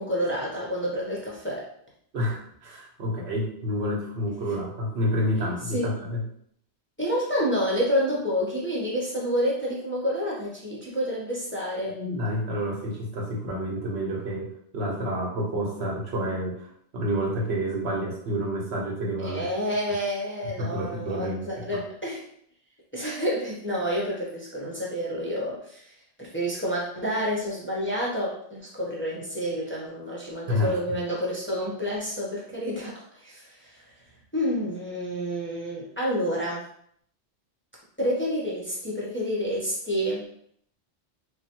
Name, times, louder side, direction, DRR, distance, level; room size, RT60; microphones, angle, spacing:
voice 1, 0.0-1.7 5.7-5.9 7.0-12.0 19.2-22.2 22.9-25.9 26.2-33.8 34.3-36.6 38.0-40.3, equal, 15° left, -6 dB, 0.5 m, -29 dB
voice 2, 2.1-6.2 11.9-16.7 16.9-19.4 20.6-21.8 30.5-31.0, equal, 70° right, -1 dB, 1.0 m, -29 dB
3.2 x 2.2 x 2.9 m, 0.67 s
omnidirectional pair, 1.1 m